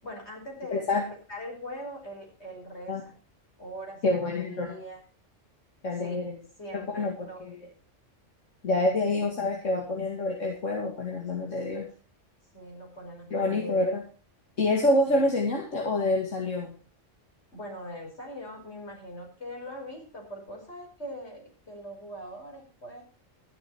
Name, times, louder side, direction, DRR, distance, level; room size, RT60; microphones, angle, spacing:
voice 1, 0.0-3.2 3.6-5.0 6.0-6.3 6.6-7.4 12.5-14.0 15.1-15.2 17.5-23.0, equal, 60° left, 0 dB, 5.5 m, -41 dB
voice 2, 0.7-1.0 2.9-3.0 4.0-4.8 5.8-6.4 6.7-7.1 7.4-7.7 8.6-11.9 13.3-14.0 14.6-16.7, left 2 dB, 80° left, 0 dB, 2.6 m, -27 dB
13.0 x 10.5 x 4.5 m, 0.37 s
omnidirectional pair, 1.3 m